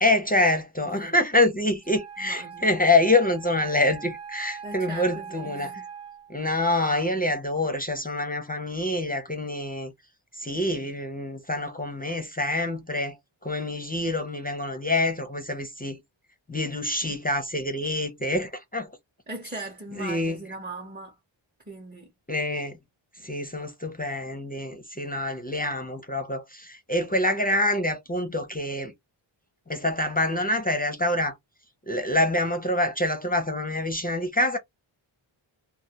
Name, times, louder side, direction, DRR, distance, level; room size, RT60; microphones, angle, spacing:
voice 1, 0.0-5.7 6.3-9.9 10.3-13.2 13.4-16.0 16.5-18.9 20.0-20.4 22.3-22.8 23.2-28.9 29.7-31.3 31.9-34.6, left 1 dB, 20° left, 0.5 m, -26 dB
voice 2, 0.8-1.2 2.2-2.7 4.6-5.8 16.7-16.8 17.1-17.2 19.3-21.2 21.7-22.1, right 2 dB, 20° right, 0.6 m, -39 dB
Wind instrument woodwind instrument, 1.8-6.4, right 7 dB, 85° right, 1.1 m, -41 dB
2.2 x 2.1 x 2.8 m
wide cardioid pair, 85°, 50 cm